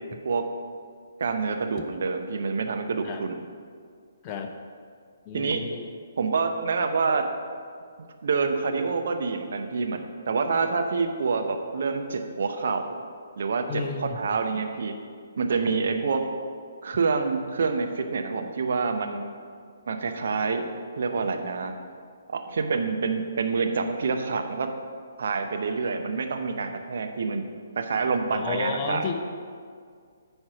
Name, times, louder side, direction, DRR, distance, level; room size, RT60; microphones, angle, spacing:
voice 1, 1.2-3.4 5.3-5.6 6.2-7.2 8.2-13.0 13.4-14.9 15.4-16.3 16.8-19.2 19.9-21.7 22.3-24.7 25.2-27.5 27.8-29.1, right 4 dB, 55° right, 5 dB, 0.8 m, -27 dB
voice 2, 5.3-5.9 13.7-14.2 28.3-29.2, left 5 dB, 25° left, 4 dB, 0.8 m, -32 dB
8.6 x 4.5 x 5.9 m, 2.1 s
figure-of-eight pair, 130°, 0 cm